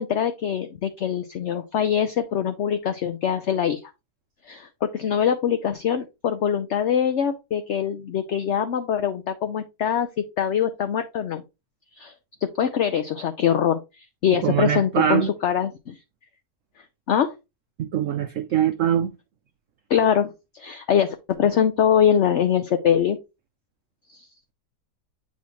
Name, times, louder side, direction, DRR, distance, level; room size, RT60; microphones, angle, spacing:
voice 1, 0.0-3.8 4.5-10.1 10.4-11.4 12.0-12.1 12.4-15.9 17.1-17.3 19.9-23.2 24.1-24.2, left 8 dB, 60° left, 0.8 m, -23 dB
voice 2, 14.4-15.3 17.8-19.1, right 10 dB, 65° right, 0.8 m, -22 dB
8.4 x 4.2 x 3.0 m
omnidirectional pair, 1.8 m